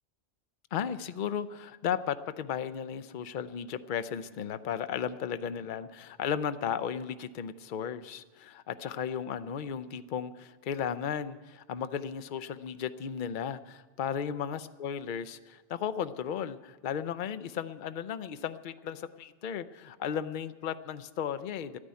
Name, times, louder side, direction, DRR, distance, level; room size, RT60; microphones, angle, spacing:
voice 1, 0.7-21.8, left 8 dB, 55° left, 12 dB, 0.7 m, -35 dB
11.5 x 9.7 x 9.6 m, 1.3 s
omnidirectional pair, 1.1 m